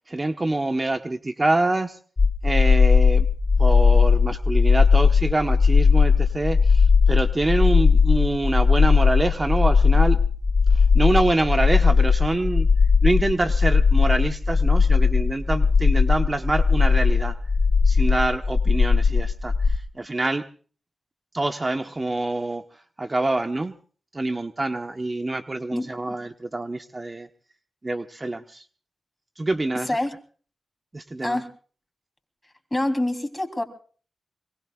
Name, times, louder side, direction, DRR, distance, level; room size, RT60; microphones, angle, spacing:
voice 1, 0.1-2.0 2.4-3.3 3.6-10.2 10.7-12.7 13.0-17.4 17.8-20.4 21.3-23.7 24.1-27.3 27.8-28.6 29.4-30.0 30.9-31.4, right 2 dB, 35° right, 7 dB, 1.1 m, -26 dB
sound 1, 2.2-19.8, left 5 dB, 55° left, 0.8 m, -18 dB
voice 2, 32.7-33.6, left 1 dB, 20° left, 5 dB, 3.3 m, -25 dB
24.5 x 22.5 x 2.4 m, 0.42 s
cardioid pair, 45°, 0 cm